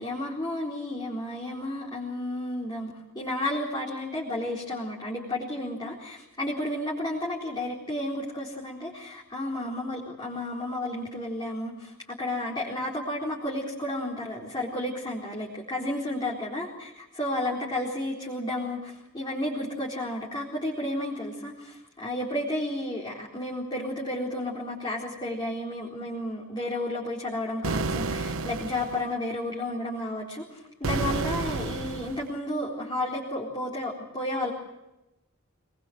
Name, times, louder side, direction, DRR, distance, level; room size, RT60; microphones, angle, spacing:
voice 1, 0.0-34.5, left 1 dB, 20° left, -4 dB, 4.2 m, -32 dB
sound 1, 27.6-29.1 30.8-32.3, right 3 dB, 70° right, 1.0 m, -30 dB
23.5 x 21.0 x 8.0 m, 0.97 s
head